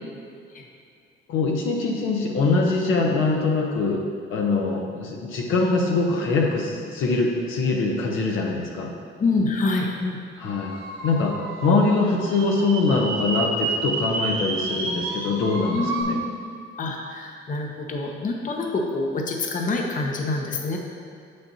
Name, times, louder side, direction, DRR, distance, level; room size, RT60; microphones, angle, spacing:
voice 1, 1.3-4.0 4.3-8.9 10.4-10.7 11.0-11.4 11.6-16.2, left 3 dB, 85° left, 0 dB, 0.9 m, -23 dB
voice 2, 9.2-10.2 15.7-16.2 16.8-20.8, left 3 dB, 40° left, 1 dB, 0.8 m, -26 dB
sound 1, 10.4-16.0, right 3 dB, 85° right, 1.1 m, -30 dB
7.1 x 6.4 x 2.8 m, 2.3 s
cardioid pair, 90°, 20 cm